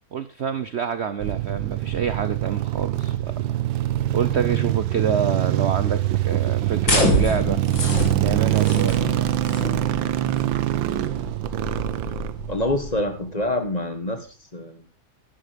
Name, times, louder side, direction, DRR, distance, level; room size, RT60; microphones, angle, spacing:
voice 1, 0.1-3.3 4.1-7.6 8.2-9.3, right 7 dB, 60° right, 12 dB, 0.7 m, -27 dB
sound 1, 1.2-13.4, right 13 dB, 80° right, 1.6 m, -24 dB
sound 2, 6.8-12.9, left 1 dB, 70° left, 3.4 m, -27 dB
voice 2, 12.5-14.3 14.5-14.8, left 1 dB, 20° left, 7 dB, 1.5 m, -26 dB
11.0 x 11.0 x 5.1 m, 0.35 s
omnidirectional pair, 2.1 m